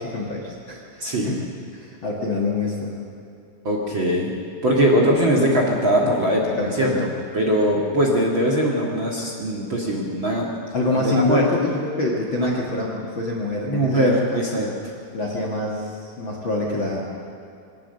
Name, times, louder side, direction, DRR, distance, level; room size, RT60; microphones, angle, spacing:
voice 1, 0.0-1.5 1.7-3.0 6.0-6.2 6.6-7.0 10.7-14.4 15.1-17.0, left 2 dB, 40° left, -2 dB, 1.9 m, -26 dB
voice 2, 3.6-4.3 4.6-6.4 6.8-7.1 7.3-10.5 10.9-11.5 12.4-12.5 13.7-14.7, equal, 40° right, -2 dB, 2.0 m, -21 dB
22.0 x 18.0 x 6.6 m, 2.5 s
omnidirectional pair, 4.4 m